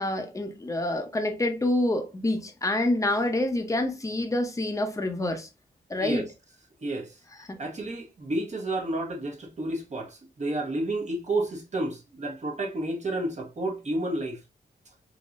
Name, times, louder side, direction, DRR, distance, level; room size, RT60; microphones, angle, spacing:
voice 1, 0.0-5.5 5.9-6.3 7.5-7.6, left 1 dB, 20° left, 0.7 m, -27 dB
voice 2, 6.8-7.2 7.6-14.4, right 2 dB, 40° right, 1.1 m, -31 dB
3.8 x 2.9 x 2.5 m
wide cardioid pair, 95°, 17 cm